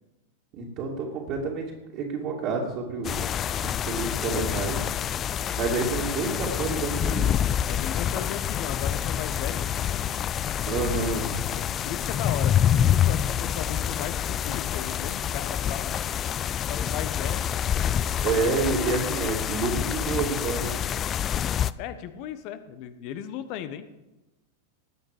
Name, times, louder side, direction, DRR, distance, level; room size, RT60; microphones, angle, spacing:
voice 1, 0.5-1.6 1.9-3.2 3.5-4.8 5.5-7.2 10.6-11.4 18.2-20.8, right 4 dB, 40° right, -3 dB, 2.6 m, -28 dB
sound 1, 3.0-21.7, left 9 dB, 25° left, 0.4 m, -27 dB
voice 2, 7.7-10.0 11.5-15.9 16.7-17.5 19.1-19.2 21.8-23.9, left 10 dB, 45° left, 11 dB, 1.1 m, -36 dB
18.5 x 8.9 x 5.0 m, 1.0 s
figure-of-eight pair, 90°, 0 cm